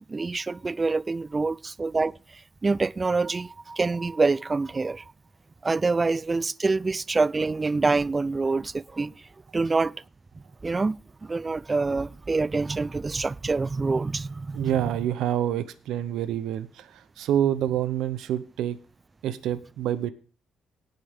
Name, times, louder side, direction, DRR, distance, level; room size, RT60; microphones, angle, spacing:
voice 1, 0.1-5.0 5.6-9.3 9.5-9.9 10.6-10.9 11.2-14.7, right 3 dB, 25° right, 0.4 m, -26 dB
voice 2, 14.5-18.8 19.2-20.1, right 11 dB, 85° right, 0.7 m, -27 dB
18.0 x 6.5 x 3.5 m
cardioid pair, 90°, 0 cm